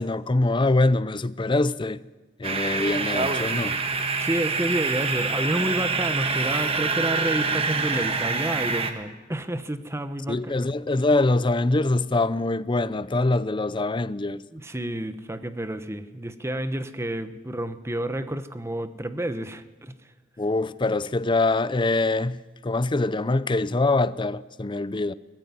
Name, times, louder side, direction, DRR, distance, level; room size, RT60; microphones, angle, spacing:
voice 1, 0.0-2.0 2.4-3.8 10.3-14.4 20.4-25.1, left 2 dB, 25° left, 0.5 m, -24 dB
sound 1, 2.4-8.9, right 4 dB, 30° right, 1.5 m, -26 dB
voice 2, 4.2-10.6 14.5-19.9, right 1 dB, 15° right, 1.0 m, -30 dB
18.0 x 15.0 x 9.7 m
head